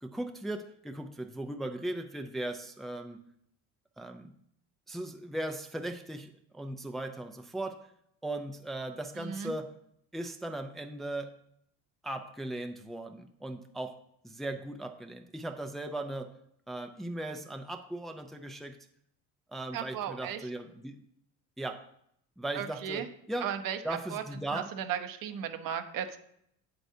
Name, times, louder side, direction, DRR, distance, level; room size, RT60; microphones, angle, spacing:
voice 1, 0.0-3.2 4.0-4.3 4.9-7.9 8.2-9.8 10.1-11.3 12.0-16.4 16.7-18.8 19.5-21.0 21.6-21.8 22.4-23.5 23.8-24.7, right 1 dB, ahead, 5 dB, 0.6 m, -38 dB
voice 2, 9.2-9.5 19.7-20.4 22.5-23.1 23.4-24.2 24.5-26.2, right 9 dB, 60° right, 8 dB, 0.9 m, -36 dB
8.0 x 7.8 x 2.8 m, 0.71 s
supercardioid pair, 95°, 38 cm